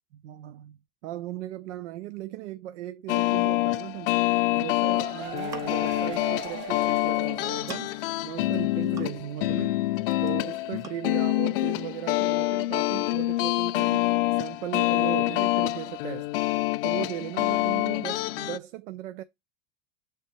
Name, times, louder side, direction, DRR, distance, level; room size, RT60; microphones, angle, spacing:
voice 1, 0.1-4.3 4.5-7.9 8.2-9.8 10.2-16.4 16.8-19.2, right 13 dB, 80° right, 0.6 m, -37 dB
sound 1, 3.1-18.6, left 18 dB, 55° left, 0.5 m, -26 dB
sound 2, 4.5-8.2 8.5-8.6 8.9-9.0, right 3 dB, 30° right, 1.2 m, -39 dB
sound 3, 5.3-6.0 7.0-7.1 7.4-8.1 8.5-9.5 9.7-10.4 10.8-11.0, right 3 dB, 10° right, 0.4 m, -45 dB
7.5 x 3.4 x 4.2 m
supercardioid pair, 165°, 35 cm